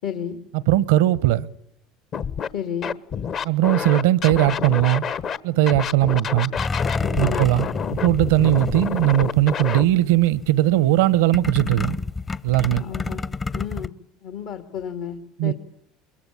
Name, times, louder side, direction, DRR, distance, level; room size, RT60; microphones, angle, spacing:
voice 1, 0.0-0.4 2.5-2.9 7.2-7.5 12.8-13.2 13.5-13.9 14.2-15.5, left 8 dB, 70° left, 2.1 m, -31 dB
voice 2, 0.5-1.5 3.4-5.1 5.4-6.5 7.1-12.0 12.4-12.8 15.4-15.5, right 15 dB, 80° right, 0.9 m, -19 dB
Scratching (performance technique), 2.1-2.5 2.8-5.4 5.7-9.8, left 7 dB, 50° left, 1.2 m, -28 dB
sound 1, 6.6-9.5 9.9-10.5 11.3-13.9, left 4 dB, 25° left, 0.9 m, -29 dB
22.0 x 22.0 x 8.7 m
hypercardioid pair, 85°, 0 cm